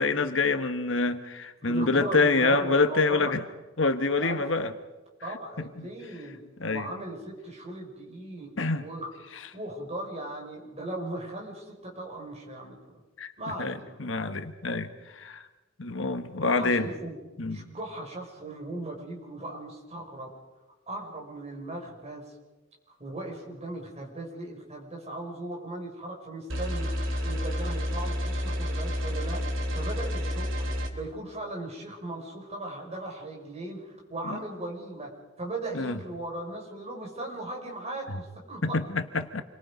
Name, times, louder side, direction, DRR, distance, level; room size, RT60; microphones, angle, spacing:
voice 1, 0.0-3.4 3.8-4.7 5.8-5.9 6.6-6.9 8.6-8.8 13.2-13.3 13.6-13.7 14.0-15.4 15.8-16.8 17.4-17.7 34.3-34.4 35.7-35.9 38.6-39.4, left 3 dB, 70° left, 9 dB, 1.4 m, -26 dB
voice 2, 1.6-3.3 4.0-4.4 5.2-6.4 6.7-8.5 8.8-12.8 13.4-14.0 16.3-17.2 17.5-20.3 20.9-22.3 22.9-35.1 35.4-38.8, right 2 dB, 35° right, -1 dB, 6.0 m, -38 dB
sound 1, 26.5-30.9, equal, 75° right, 3.2 m, -30 dB
28.5 x 23.0 x 5.3 m, 1.1 s
head